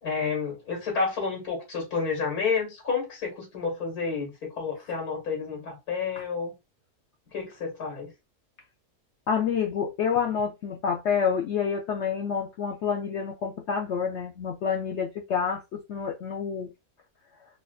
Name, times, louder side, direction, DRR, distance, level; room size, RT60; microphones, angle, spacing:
voice 1, 0.0-6.5 7.3-8.1, left 5 dB, 80° left, 2.3 m, -30 dB
voice 2, 9.3-16.7, left 7 dB, 65° left, 0.7 m, -28 dB
4.1 x 2.5 x 2.3 m
omnidirectional pair, 1.5 m